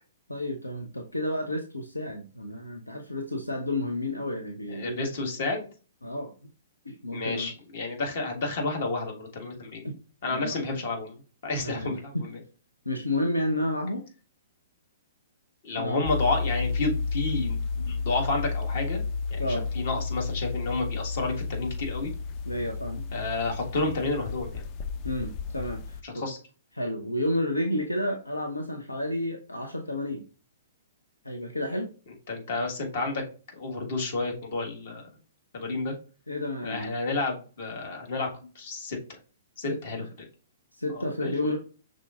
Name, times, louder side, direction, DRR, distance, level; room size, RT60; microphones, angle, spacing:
voice 1, 0.3-5.1 6.0-6.3 6.8-7.5 9.8-10.0 10.3-10.5 11.6-11.9 12.9-14.1 15.8-16.0 19.4-19.6 22.5-23.1 25.0-26.3 26.7-30.3 31.2-31.9 36.3-36.9 39.7-39.8 40.7-41.6, left 1 dB, 85° left, 4 dB, 0.6 m, -31 dB
voice 2, 4.7-5.7 7.1-9.9 10.2-12.3 15.6-19.0 19.3-22.1 23.1-24.6 26.0-26.4 32.3-33.2 33.5-35.0 35.5-35.9 36.6-39.2 39.6-40.0 40.9-41.3, left 3 dB, 50° left, 1 dB, 1.4 m, -31 dB
sound 1, 16.0-26.0, left 4 dB, 30° left, 0.4 m, -32 dB
5.8 x 3.6 x 2.4 m, 0.37 s
figure-of-eight pair, 115°, 0 cm